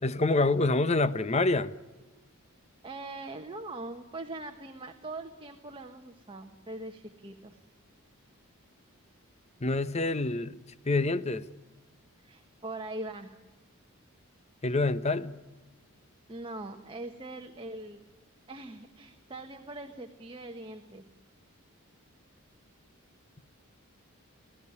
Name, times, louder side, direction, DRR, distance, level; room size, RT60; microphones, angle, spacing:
voice 1, 0.0-1.7 9.6-10.6 10.8-11.4 14.6-15.4, left 2 dB, 30° left, 14 dB, 0.7 m, -26 dB
voice 2, 2.8-7.6 12.2-13.4 16.3-18.0 18.5-21.0, right 2 dB, 25° right, 4 dB, 1.2 m, -42 dB
25.0 x 17.0 x 9.6 m, 1.2 s
head